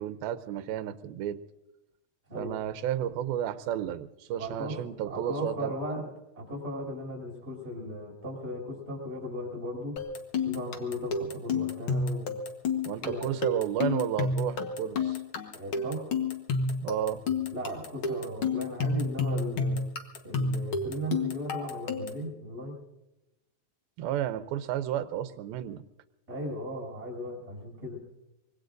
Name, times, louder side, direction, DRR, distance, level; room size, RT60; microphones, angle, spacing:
voice 1, 0.0-1.4 2.4-5.7 12.8-15.2 16.8-17.2 24.0-25.8, right 11 dB, 85° right, 11 dB, 2.6 m, -32 dB
voice 2, 4.3-6.1 6.3-10.0 10.4-12.4 13.0-13.3 15.5-16.1 17.5-19.8 20.2-22.8 26.3-28.0, equal, 15° right, -3 dB, 6.3 m, -37 dB
sound 1, 10.0-22.3, left 4 dB, 65° left, 1.3 m, -31 dB
25.0 x 22.0 x 2.6 m, 0.96 s
omnidirectional pair, 4.3 m